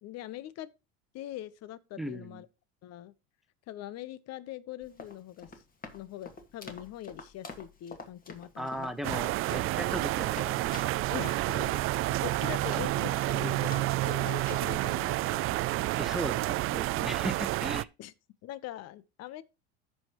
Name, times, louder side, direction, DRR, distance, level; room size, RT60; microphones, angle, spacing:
voice 1, 0.0-0.7 1.1-2.5 2.8-3.1 3.7-5.5 5.9-8.9 11.1-11.9 12.2-15.6 18.0-18.1 18.4-19.4, left 13 dB, 50° left, 0.9 m, -42 dB
voice 2, 2.0-2.4 8.6-10.7 12.7-12.9 16.0-17.9, equal, ahead, 1.1 m, -38 dB
Run, 4.8-13.4 13.7-14.7, left 4 dB, 25° left, 2.0 m, -47 dB
sound 1, 9.0-17.8, right 17 dB, 40° right, 0.4 m, -29 dB
14.0 x 5.6 x 3.0 m
supercardioid pair, 105°, 33 cm